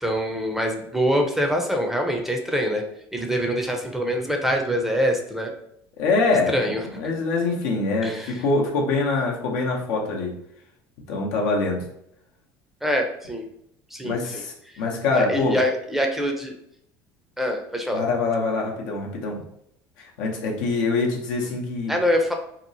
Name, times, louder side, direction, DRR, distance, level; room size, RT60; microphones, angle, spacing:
voice 1, 0.0-2.8 3.1-5.5 6.5-6.8 8.0-8.3 12.8-13.4 13.9-14.4 15.1-16.5 17.4-18.0 21.9-22.3, equal, 5° right, 2 dB, 0.5 m, -24 dB
voice 2, 6.0-10.3 11.1-11.8 14.0-15.6 17.9-19.4 20.0-21.9, left 3 dB, 80° left, -1 dB, 0.7 m, -24 dB
2.8 x 2.0 x 2.7 m, 0.74 s
supercardioid pair, 90°, 9 cm